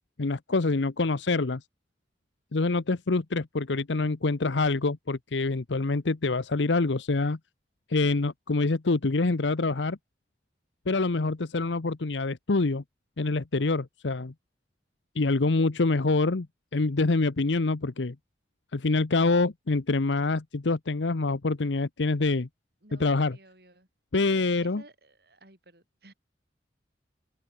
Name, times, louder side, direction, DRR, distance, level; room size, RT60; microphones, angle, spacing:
voice 1, 0.2-1.6 2.5-7.4 7.9-10.0 10.9-12.8 13.2-14.3 15.2-16.5 16.7-18.1 18.7-22.5 23.0-23.4 24.1-24.8, left 3 dB, 90° left, 0.9 m, -26 dB
voice 2, 22.8-23.9 24.1-26.1, right 2 dB, 60° right, 6.0 m, -54 dB
open air
head